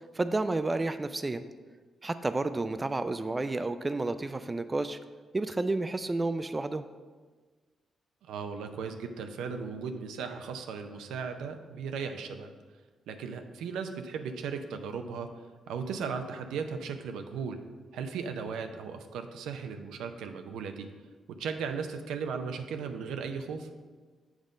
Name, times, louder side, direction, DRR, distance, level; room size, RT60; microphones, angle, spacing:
voice 1, 0.1-1.4 2.0-5.0 5.3-6.8, right 2 dB, 25° right, 11 dB, 0.3 m, -31 dB
voice 2, 8.2-12.5 13.1-15.3 15.7-17.6 17.9-20.9 21.4-23.7, right 5 dB, 90° right, 7 dB, 0.5 m, -36 dB
7.2 x 3.8 x 5.3 m, 1.4 s
cardioid pair, 70°, 0 cm